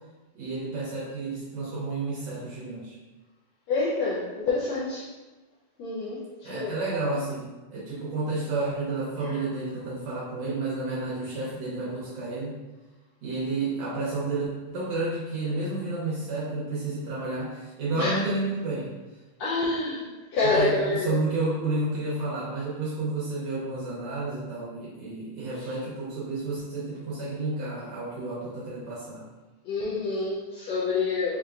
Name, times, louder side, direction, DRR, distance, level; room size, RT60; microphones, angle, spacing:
voice 1, 0.3-3.0 6.4-12.5 13.2-18.9 20.4-29.2, right 2 dB, 70° right, -7 dB, 1.7 m, -31 dB
voice 2, 3.7-5.1 5.8-6.8 9.2-9.4 17.9-18.2 19.4-20.0 20.3-21.1 25.6-25.7 29.6-31.4, left 3 dB, 85° left, -7 dB, 1.5 m, -27 dB
5.9 x 2.8 x 2.4 m, 1.2 s
omnidirectional pair, 3.8 m